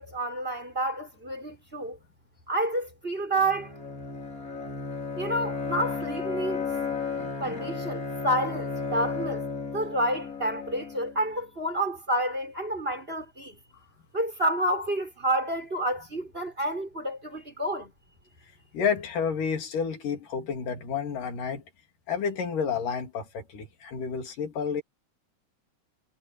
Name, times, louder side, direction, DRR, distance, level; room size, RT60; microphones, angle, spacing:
voice 1, 0.0-2.0 2.5-3.7 5.2-6.6 7.4-9.4 9.7-13.6 14.1-17.9, right 1 dB, 15° right, 6.4 m, -29 dB
Bowed string instrument, 3.4-11.2, left 4 dB, 30° left, 2.8 m, -34 dB
voice 2, 18.7-21.6 22.1-24.8, left 6 dB, 85° left, 4.5 m, -30 dB
omnidirectional pair, 3.7 m